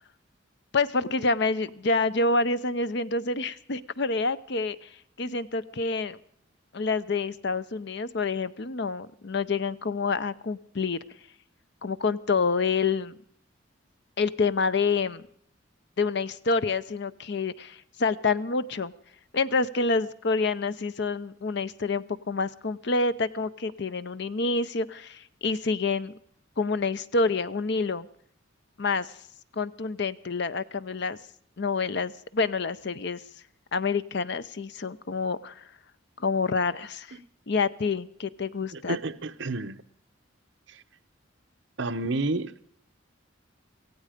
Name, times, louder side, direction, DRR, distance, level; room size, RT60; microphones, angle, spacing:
voice 1, 0.7-4.9 5.2-6.2 6.7-11.0 11.8-13.2 14.2-15.2 16.0-18.9 19.3-26.1 26.6-28.1 28.8-29.1 29.6-31.2 31.6-33.2 33.7-35.6 36.2-37.1 37.5-39.0, left 4 dB, 60° left, 14 dB, 0.7 m, -27 dB
voice 2, 38.7-39.8 41.8-42.7, right 2 dB, 65° right, 9 dB, 0.9 m, -30 dB
17.5 x 16.0 x 5.1 m, 0.64 s
head